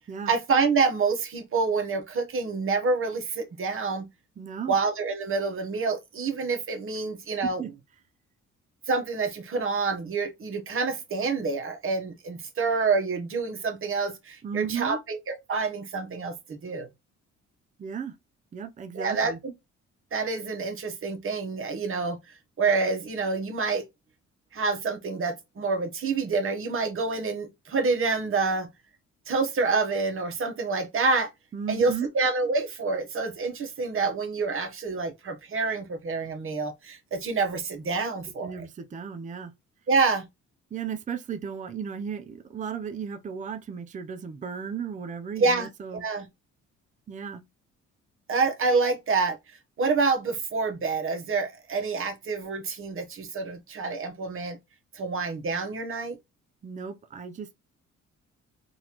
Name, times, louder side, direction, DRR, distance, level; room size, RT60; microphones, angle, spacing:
voice 1, 0.3-4.1 4.7-7.6 8.9-16.9 18.9-19.5 20.1-23.8 24.5-28.7 29.3-31.3 31.7-38.6 39.9-40.2 45.4-45.7 46.0-46.3 48.3-49.4 49.8-54.6 54.9-56.2, right 4 dB, 45° right, 1.0 m, -27 dB
voice 2, 4.4-4.7 7.4-7.7 14.4-15.0 17.8-18.1 18.5-19.4 31.5-32.1 38.4-39.5 40.7-46.1 47.1-47.4 56.6-57.5, right 7 dB, 25° right, 0.5 m, -35 dB
3.9 x 2.5 x 2.9 m
cardioid pair, 90°, 30 cm